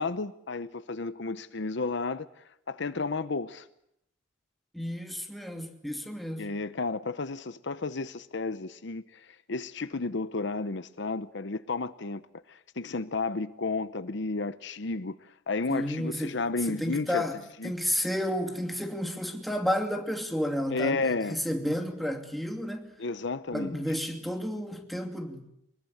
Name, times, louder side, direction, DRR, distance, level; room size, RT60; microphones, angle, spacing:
voice 1, 0.0-3.7 6.4-12.2 12.5-17.2 17.6-17.7 20.7-21.4 23.0-23.8, left 3 dB, 65° left, 0.9 m, -32 dB
voice 2, 4.7-6.5 15.7-16.4 16.7-17.4 17.6-22.9 23.5-25.5, equal, ahead, 2.7 m, -31 dB
24.0 x 21.5 x 8.0 m
head